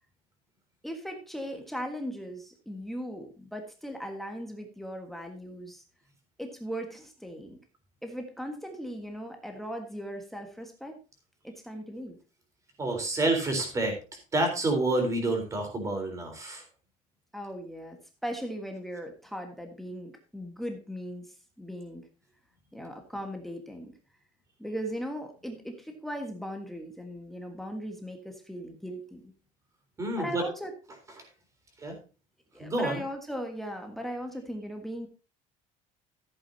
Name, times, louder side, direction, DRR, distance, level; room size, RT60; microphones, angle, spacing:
voice 1, 0.8-5.8 6.4-7.6 8.0-11.0 11.4-12.2 17.3-22.1 22.7-24.0 24.6-29.3 30.2-30.7 32.5-35.1, equal, ahead, 4 dB, 1.5 m, -38 dB
voice 2, 12.8-13.9 14.3-16.6 30.0-30.5 31.8-31.9 32.6-33.0, right 2 dB, 20° right, 4 dB, 3.8 m, -28 dB
14.5 x 8.7 x 2.8 m, 0.33 s
cardioid pair, 165°, 15 cm